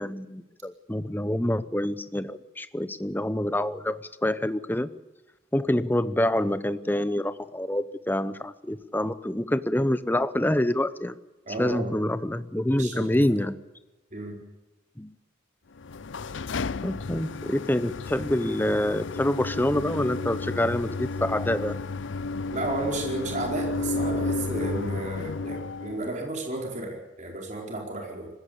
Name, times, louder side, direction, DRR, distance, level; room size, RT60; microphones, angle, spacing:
voice 1, 0.0-4.9 5.5-11.2 11.6-13.6 15.0-15.1 16.8-21.8, left 1 dB, 10° left, 14 dB, 0.8 m, -26 dB
voice 2, 11.5-11.9 12.7-13.4 14.1-14.4 22.5-28.3, right 2 dB, 40° right, 1 dB, 4.6 m, -33 dB
sound 1, 15.8-26.1, left 3 dB, 75° left, 0.6 m, -32 dB
20.5 x 16.5 x 8.5 m, 1.1 s
head